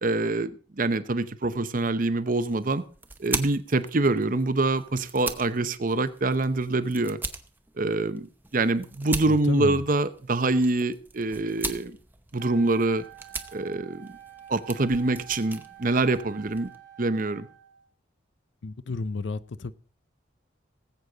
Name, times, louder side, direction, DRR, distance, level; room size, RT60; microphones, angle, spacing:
voice 1, 0.0-2.8 3.2-7.2 7.8-8.3 8.5-12.0 12.3-13.0 13.5-14.1 14.5-16.7 17.0-17.5, right 2 dB, 45° right, 0.7 m, -25 dB
sound 1, 2.2-16.8, right 3 dB, 10° right, 0.8 m, -40 dB
voice 2, 9.3-9.8 18.6-19.7, left 3 dB, 65° left, 0.5 m, -32 dB
Wind instrument woodwind instrument, 12.4-17.9, right 10 dB, 80° right, 1.7 m, -48 dB
19.0 x 8.2 x 3.9 m
head